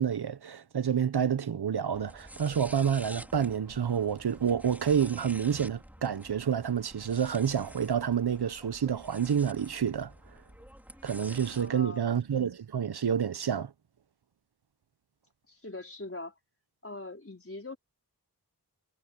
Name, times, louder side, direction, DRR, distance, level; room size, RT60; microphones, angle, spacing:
voice 1, 0.0-10.1 11.0-13.7, right 8 dB, 80° right, 0.9 m, -28 dB
sound 1, 1.9-11.7, equal, 5° right, 4.1 m, -49 dB
voice 2, 11.6-12.2 15.5-16.3 16.8-17.8, left 2 dB, 35° left, 4.8 m, -42 dB
wide cardioid pair, 75°, 39 cm